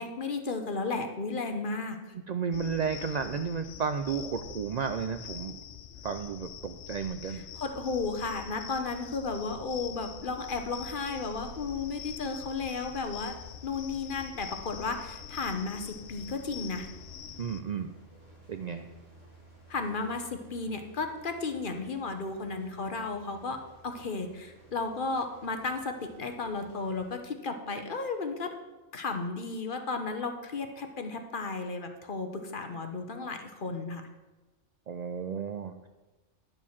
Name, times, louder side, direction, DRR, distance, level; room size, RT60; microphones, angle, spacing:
voice 1, 0.0-2.1 7.3-13.3 13.6-16.9 19.7-28.5 28.9-34.0, left 4 dB, 45° left, 6 dB, 1.0 m, -34 dB
voice 2, 2.3-5.6 6.0-7.4 17.4-17.9 18.5-18.9 34.9-35.9, right 6 dB, 65° right, 8 dB, 0.4 m, -33 dB
sound 1, 2.5-17.6, left 8 dB, 70° left, 0.9 m, -45 dB
sound 2, 10.7-27.2, right 1 dB, 85° right, 4.6 m, -56 dB
10.5 x 4.7 x 7.1 m, 1.1 s
omnidirectional pair, 1.3 m